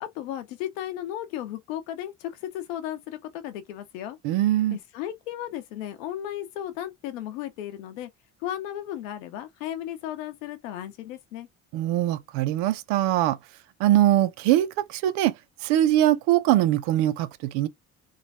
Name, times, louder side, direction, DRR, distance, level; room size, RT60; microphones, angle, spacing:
voice 1, 0.0-4.2 4.7-8.1 8.4-11.5, left 12 dB, 90° left, 1.0 m, -35 dB
voice 2, 4.2-4.8 11.7-13.4 13.8-15.3 15.6-17.7, right 13 dB, 80° right, 0.7 m, -22 dB
3.7 x 3.2 x 4.1 m
hypercardioid pair, 60°, 38 cm